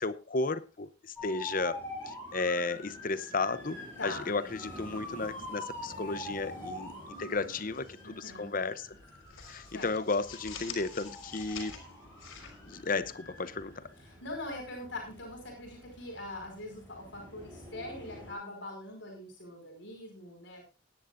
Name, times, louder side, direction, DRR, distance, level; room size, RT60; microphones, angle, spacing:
voice 1, 0.0-1.8 2.1-8.9 9.5-11.8 12.7-13.8, left 3 dB, 45° left, 15 dB, 0.7 m, -34 dB
sound 1, 1.2-18.3, left 1 dB, 10° left, 7.3 m, -46 dB
voice 2, 4.0-4.4 8.0-8.5 9.7-9.9 14.0-20.6, left 1 dB, 60° left, 1 dB, 5.2 m, -42 dB
sound 2, 7.1-8.0 8.3-8.5 8.9-13.4, left 6 dB, 85° left, 4.3 m, -47 dB
19.0 x 10.5 x 2.6 m, 0.30 s
head